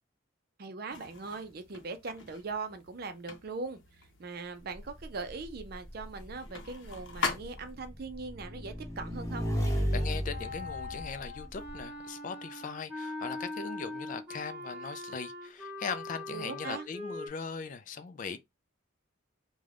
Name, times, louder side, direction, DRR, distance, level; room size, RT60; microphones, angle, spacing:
voice 1, 0.6-3.8 4.2-9.5 16.3-16.9, right 4 dB, 55° right, 0.5 m, -40 dB
sound 1, 0.9-8.0, left 4 dB, 80° left, 0.7 m, -42 dB
Motorcycle / Engine, 4.7-11.8, equal, 15° left, 0.7 m, -35 dB
voice 2, 9.9-18.4, left 5 dB, 45° left, 0.3 m, -39 dB
Wind instrument woodwind instrument, 10.3-17.3, left 2 dB, 10° right, 1.0 m, -41 dB
2.4 x 2.2 x 3.3 m
head